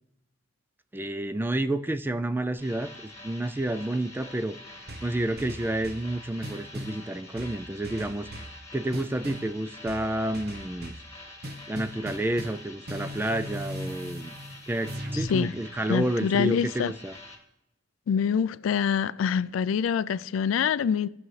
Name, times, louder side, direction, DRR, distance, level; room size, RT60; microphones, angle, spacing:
voice 1, 0.9-4.6 5.0-10.9 11.7-14.3 14.7-17.1, right 1 dB, 10° right, 0.3 m, -30 dB
sound 1, 2.6-17.4, left 2 dB, 15° left, 1.6 m, -46 dB
sound 2, 4.9-6.1 6.4-7.0 7.4-8.6 8.9-9.5 9.9-11.1 11.4-15.4, equal, 55° right, 1.1 m, -38 dB
voice 2, 15.9-16.9 18.1-21.1, left 7 dB, 85° left, 0.3 m, -25 dB
17.5 x 6.2 x 3.2 m
head